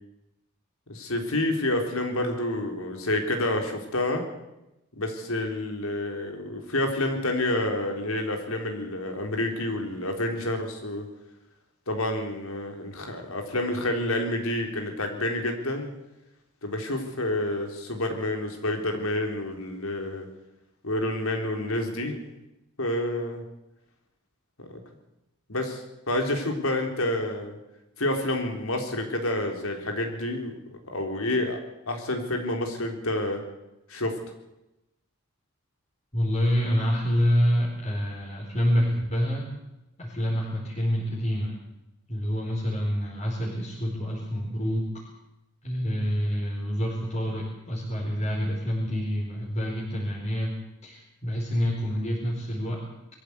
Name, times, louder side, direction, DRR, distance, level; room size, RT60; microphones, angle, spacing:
voice 1, 0.9-4.2 4.9-11.1 11.9-15.9 16.6-20.3 20.8-22.2 22.8-23.4 24.6-24.8 25.5-27.6 28.0-30.5 30.8-31.6 31.9-33.4 33.9-34.2, left 1 dB, 80° left, 4 dB, 3.9 m, -28 dB
voice 2, 36.1-39.5 40.0-41.6 42.1-44.9 45.6-50.5 50.8-52.8, equal, 30° left, -3 dB, 4.5 m, -27 dB
22.0 x 14.5 x 8.3 m, 0.92 s
head